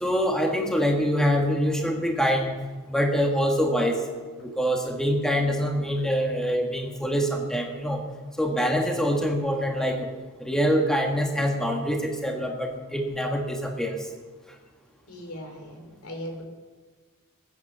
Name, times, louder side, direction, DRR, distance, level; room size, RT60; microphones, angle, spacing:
voice 1, 0.0-2.5 2.9-4.0 4.4-8.0 8.4-10.1 10.4-14.1, equal, 5° left, 2 dB, 1.6 m, -25 dB
voice 2, 15.1-16.4, equal, 90° left, 4 dB, 3.9 m, -38 dB
21.5 x 9.7 x 6.7 m, 1.4 s
head